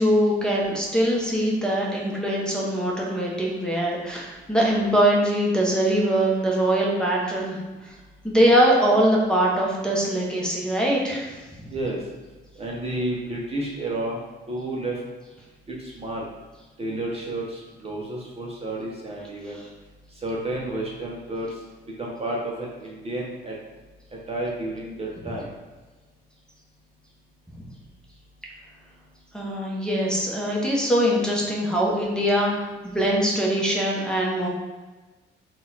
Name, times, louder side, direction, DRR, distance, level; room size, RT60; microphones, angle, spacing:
voice 1, 0.0-7.6 7.8-7.9 8.2-11.3 19.5-19.6 29.3-34.5, equal, 5° left, -3 dB, 0.9 m, -22 dB
voice 2, 12.6-14.2 14.5-15.0 15.7-16.3 16.8-19.6 20.2-21.5 22.0-23.5 24.3-25.5, right 1 dB, 30° right, -3 dB, 0.8 m, -31 dB
3.9 x 2.4 x 4.0 m, 1.2 s
cardioid pair, 90°, 20 cm